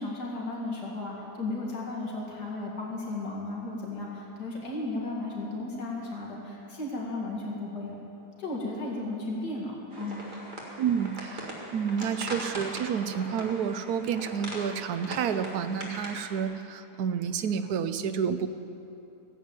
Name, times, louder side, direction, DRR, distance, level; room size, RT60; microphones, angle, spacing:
voice 1, 0.0-7.9 8.4-10.3, left 2 dB, 80° left, -3 dB, 2.6 m, -34 dB
sound 1, 9.9-16.4, right 1 dB, 30° right, 2.1 m, -40 dB
voice 2, 10.8-18.5, right 7 dB, 70° right, 10 dB, 1.1 m, -30 dB
15.5 x 7.8 x 8.9 m, 2.9 s
omnidirectional pair, 1.8 m